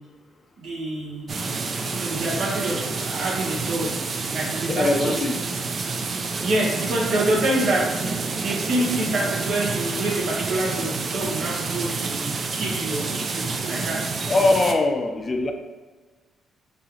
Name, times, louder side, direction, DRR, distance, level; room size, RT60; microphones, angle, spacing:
voice 1, 0.6-1.3 1.9-5.3 6.4-7.9 8.4-14.0, right 1 dB, 70° right, -2 dB, 1.0 m, -27 dB
sound 1, 1.3-14.7, right 4 dB, 45° right, 0.4 m, -28 dB
voice 2, 4.7-5.3 7.2-7.3 14.3-15.5, left 2 dB, 35° left, 6 dB, 0.4 m, -21 dB
5.3 x 2.7 x 2.9 m, 1.4 s
cardioid pair, 90°, 0 cm